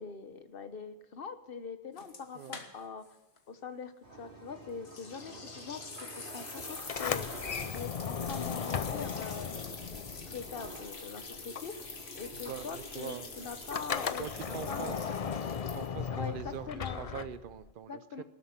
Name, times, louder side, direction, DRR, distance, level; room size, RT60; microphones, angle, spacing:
voice 1, 0.0-3.0 3.5-3.9 4.2-7.5 7.7-10.0 10.3-11.9 12.1-15.1 16.1-17.0 17.9-18.2, left 5 dB, 60° left, 10 dB, 1.2 m, -43 dB
sound 1, 2.0-3.1 3.4-3.5 4.8-16.1, left 4 dB, 80° left, 1.8 m, -45 dB
sound 2, 4.0-16.2, right 2 dB, 80° right, 3.9 m, -51 dB
Sliding door, 6.8-11.1 11.3-17.7, left 7 dB, 45° left, 0.5 m, -37 dB
voice 2, 12.3-13.3 14.2-15.0 15.7-18.2, right 9 dB, 60° right, 14 dB, 0.8 m, -43 dB
19.0 x 8.2 x 5.9 m, 1.0 s
omnidirectional pair, 1.1 m